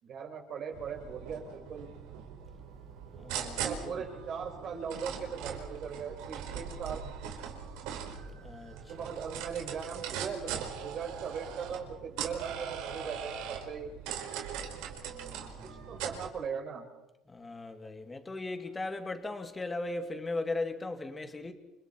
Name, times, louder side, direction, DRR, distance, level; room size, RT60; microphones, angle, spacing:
voice 1, 0.0-1.9 3.6-7.0 8.9-13.9 15.9-16.9, right 6 dB, 45° right, 5.1 m, -39 dB
sound 1, 0.7-16.3, right 8 dB, 85° right, 4.8 m, -40 dB
voice 2, 3.2-3.9 8.4-8.8 15.1-15.9 17.3-21.5, left 2 dB, 15° left, 2.4 m, -38 dB
29.5 x 28.5 x 4.6 m
cardioid pair, 150°, 0 cm